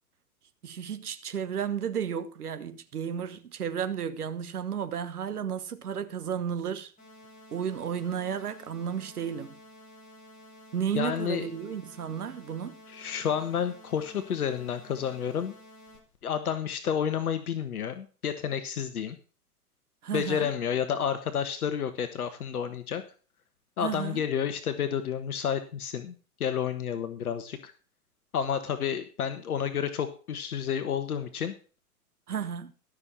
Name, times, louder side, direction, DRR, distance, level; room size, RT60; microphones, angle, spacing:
voice 1, 0.6-6.9 7.5-9.5 10.7-12.8 20.0-20.5 23.8-24.2 32.3-32.7, right 8 dB, 80° right, 1.3 m, -33 dB
sound 1, 7.0-16.0, left 1 dB, 15° left, 7.4 m, -52 dB
voice 2, 10.9-11.5 12.9-15.5 16.2-19.2 20.1-23.0 23.8-26.1 26.4-27.7 28.3-31.5, left 8 dB, 70° left, 1.3 m, -30 dB
13.5 x 6.5 x 5.7 m
hypercardioid pair, 120°, 45 cm